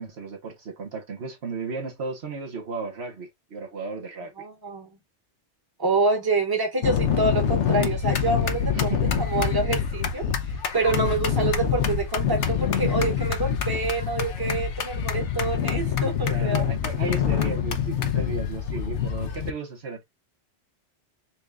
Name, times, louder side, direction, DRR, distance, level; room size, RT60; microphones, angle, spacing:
voice 1, 0.0-4.5 8.7-9.1 16.2-20.0, right 4 dB, 65° right, 1.3 m, -35 dB
voice 2, 4.4-4.9 5.8-8.9 9.3-10.2 10.7-16.6, right 3 dB, 20° right, 1.2 m, -26 dB
sound 1, 6.8-19.5, left 8 dB, 80° left, 1.1 m, -25 dB
4.3 x 3.4 x 2.4 m
omnidirectional pair, 1.2 m